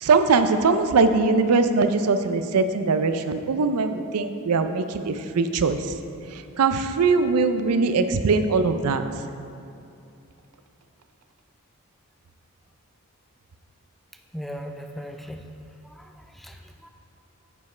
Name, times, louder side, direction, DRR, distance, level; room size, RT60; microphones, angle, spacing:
voice 1, 0.0-5.8 6.6-9.0, right 4 dB, 85° right, 9 dB, 0.5 m, -21 dB
voice 2, 14.3-15.5 15.8-16.9, equal, ahead, 4 dB, 0.3 m, -38 dB
9.3 x 7.2 x 3.2 m, 2.6 s
head